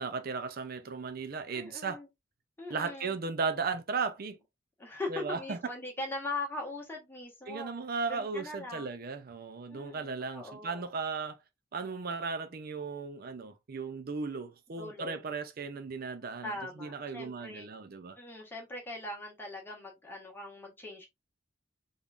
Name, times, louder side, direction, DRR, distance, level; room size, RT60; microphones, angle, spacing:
voice 1, 0.0-2.0 2.7-4.4 5.1-5.6 7.5-11.4 11.7-16.5 16.8-18.2, right 4 dB, 50° right, 0.5 m, -36 dB
voice 2, 1.5-2.1 2.6-3.2 4.8-7.7 8.1-8.9 9.7-10.9 14.8-15.2 16.4-17.7 18.2-21.1, left 2 dB, 10° left, 1.5 m, -41 dB
3.6 x 3.5 x 2.5 m
head